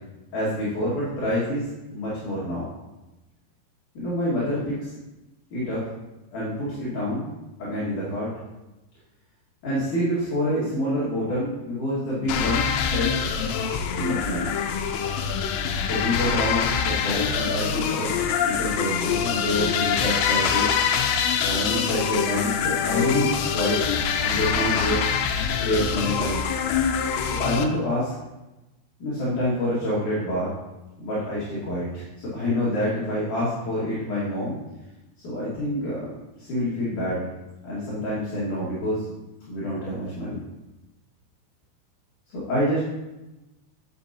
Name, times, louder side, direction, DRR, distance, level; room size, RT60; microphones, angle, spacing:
voice 1, 0.3-1.6 1.9-2.7 3.9-4.9 5.5-5.8 6.3-7.3 7.6-8.3 9.6-13.2 13.9-14.5 15.8-18.1 18.4-20.7 21.4-23.9 24.2-25.1 25.6-26.4 27.3-28.1 29.0-30.5 31.0-34.6 35.2-36.1 36.4-37.2 37.6-39.1 39.5-40.4 42.3-42.8, left 1 dB, 55° left, -9 dB, 3.0 m, -27 dB
sound 1, 12.3-27.7, left 7 dB, 90° left, 2.9 m, -25 dB
10.0 x 6.9 x 2.8 m, 1.0 s
omnidirectional pair, 4.8 m